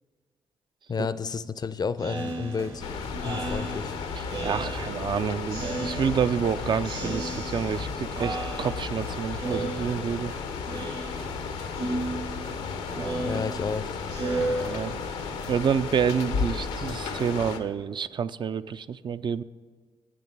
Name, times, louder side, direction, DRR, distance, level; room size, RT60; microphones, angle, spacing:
voice 1, 0.9-2.8 3.2-3.9 13.2-14.0, left 5 dB, 40° left, 16 dB, 0.5 m, -31 dB
Speech synthesizer, 2.0-5.1 5.5-6.5 6.8-7.9 8.1-9.1 9.4-10.3 10.6-11.4 11.7-15.3, right 2 dB, 65° right, 1.9 m, -34 dB
sound 1, 2.2-16.3, right 1 dB, 90° right, 2.3 m, -46 dB
sound 2, 2.8-17.6, left 5 dB, 85° left, 0.7 m, -34 dB
voice 2, 4.2-10.3 14.4-14.9 15.5-19.4, right 7 dB, 50° right, 12 dB, 0.3 m, -28 dB
8.4 x 6.7 x 6.0 m, 1.6 s
hypercardioid pair, 40°, 10 cm